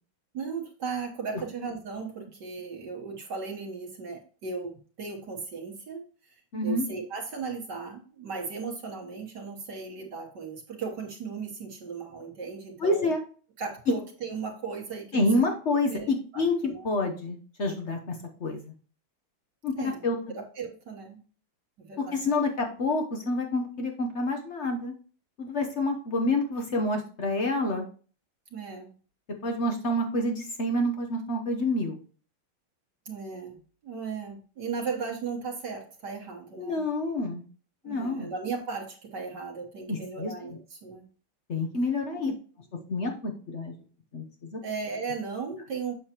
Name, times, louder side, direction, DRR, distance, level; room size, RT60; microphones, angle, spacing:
voice 1, 0.3-6.3 6.6-13.1 13.6-15.2 15.9-16.9 19.7-20.0 20.3-21.2 21.8-22.3 28.5-28.9 33.0-36.8 37.8-41.1 42.1-42.3 44.6-45.9, right 5 dB, 55° right, 0 dB, 1.7 m, -36 dB
voice 2, 6.5-6.9 12.8-13.2 15.1-18.7 19.6-19.7 20.0-20.2 22.0-24.9 25.4-27.8 29.4-32.0 36.6-37.4 37.8-38.3 39.9-40.3 41.5-42.3 42.9-43.7 44.1-44.2 44.5-44.6, left 2 dB, 55° left, 3 dB, 0.7 m, -28 dB
8.0 x 6.4 x 2.9 m, 0.40 s
omnidirectional pair, 2.4 m